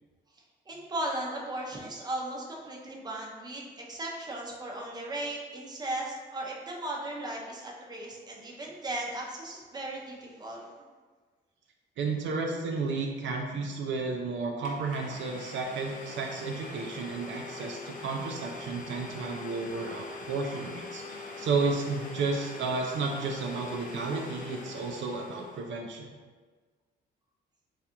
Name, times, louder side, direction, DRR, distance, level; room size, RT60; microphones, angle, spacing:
voice 1, 0.7-10.6, right 1 dB, 20° right, -2 dB, 0.6 m, -36 dB
voice 2, 12.0-26.2, right 4 dB, 70° right, 1 dB, 0.4 m, -32 dB
Domestic sounds home sounds, 14.2-14.3 14.6-25.7, left 3 dB, 40° left, 0.6 m, -43 dB
3.3 x 2.4 x 2.8 m, 1.4 s
cardioid pair, 90°, 20 cm